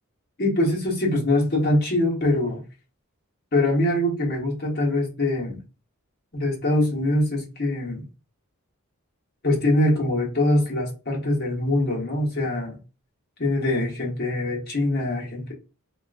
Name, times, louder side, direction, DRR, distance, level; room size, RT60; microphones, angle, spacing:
voice 1, 0.4-2.6 3.5-5.6 6.3-8.0 9.4-12.8 13.4-15.5, left 1 dB, 45° left, -1 dB, 1.1 m, -23 dB
3.6 x 2.4 x 2.4 m, 0.31 s
head